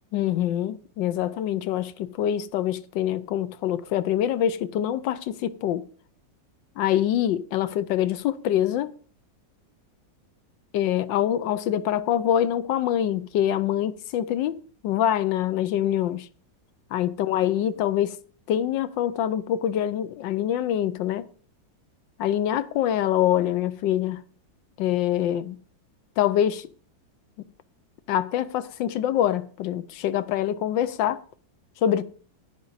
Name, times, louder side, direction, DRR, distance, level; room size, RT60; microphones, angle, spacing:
voice 1, 0.1-5.9 6.8-8.9 10.7-16.3 16.9-18.2 18.5-21.3 22.2-24.2 24.8-25.6 26.2-26.7 28.1-31.2 31.8-32.0, left 11 dB, 80° left, 1.4 m, -25 dB
10.0 x 9.6 x 4.0 m
omnidirectional pair, 2.0 m